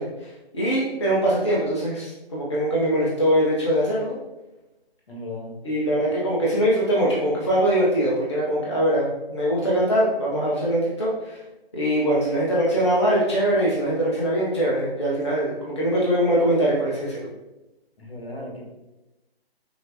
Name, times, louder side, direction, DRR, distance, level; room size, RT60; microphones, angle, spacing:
voice 1, 0.0-4.2 5.6-11.4 11.7-17.2, right 1 dB, 30° left, -6 dB, 0.5 m, -22 dB
voice 2, 5.1-5.5 18.0-18.7, left 1 dB, 65° left, -1 dB, 1.3 m, -36 dB
5.6 x 2.5 x 2.7 m, 1.0 s
figure-of-eight pair, 150°, 32 cm